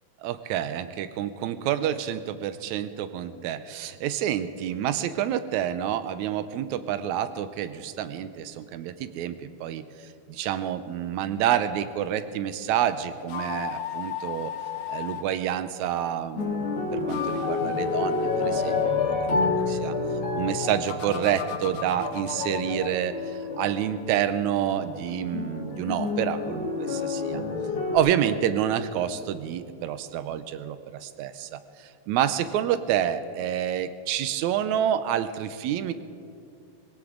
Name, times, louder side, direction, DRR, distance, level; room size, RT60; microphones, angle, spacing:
voice 1, 0.2-9.8 10.3-14.5 14.9-19.2 19.4-20.0 20.3-23.2 23.6-27.4 27.9-35.9, right 10 dB, 75° right, 12 dB, 1.9 m, -28 dB
sound 1, 13.2-15.3 16.9-18.9 20.9-23.0, left 8 dB, 70° left, 1.6 m, -34 dB
sound 2, 16.4-28.0, left 4 dB, 45° left, 2.2 m, -29 dB
21.5 x 17.5 x 3.8 m, 2.5 s
omnidirectional pair, 3.6 m